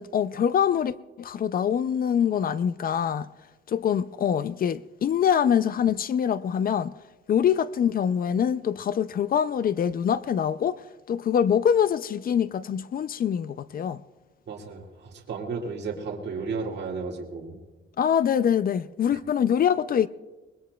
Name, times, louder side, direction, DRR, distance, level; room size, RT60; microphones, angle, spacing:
voice 1, 0.0-3.3 3.7-6.9 7.3-10.8 11.1-14.0 18.0-20.1, left 8 dB, 45° left, 0.4 m, -24 dB
voice 2, 14.5-17.6, right 4 dB, 55° right, 2.0 m, -33 dB
24.5 x 20.5 x 2.3 m
cardioid pair, 125°, 21 cm